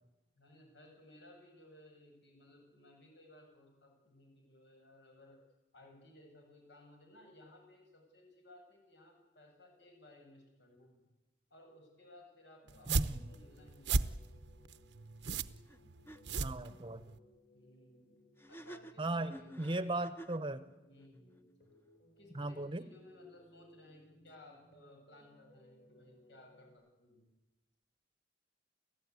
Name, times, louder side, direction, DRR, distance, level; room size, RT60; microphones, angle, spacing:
voice 1, 0.3-5.4 5.7-11.1 11.5-14.4 17.5-18.2 18.5-20.0 20.9-21.5 22.2-27.3, left 1 dB, 75° left, 2 dB, 7.8 m, -60 dB
sound 1, 12.6-26.7, left 1 dB, 60° left, 7.1 m, -65 dB
sound 2, 12.7-17.2, right 3 dB, 80° right, 0.8 m, -36 dB
voice 2, 12.9-13.3 16.4-17.1 19.0-20.6 22.3-22.9, right 2 dB, 30° right, 14 dB, 0.9 m, -37 dB
sound 3, 15.7-15.8 16.1-16.2 18.4-20.5, right 1 dB, 15° left, 1.0 m, -51 dB
29.5 x 15.0 x 9.6 m, 1.1 s
head